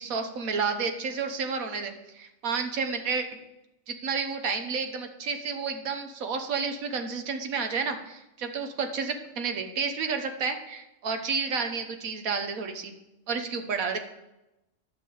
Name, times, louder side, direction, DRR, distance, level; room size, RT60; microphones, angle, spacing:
voice 1, 0.0-3.2 3.9-12.9 13.3-14.0, right 5 dB, 90° right, 6 dB, 1.5 m, -31 dB
10.5 x 6.7 x 5.6 m, 0.93 s
omnidirectional pair, 1.4 m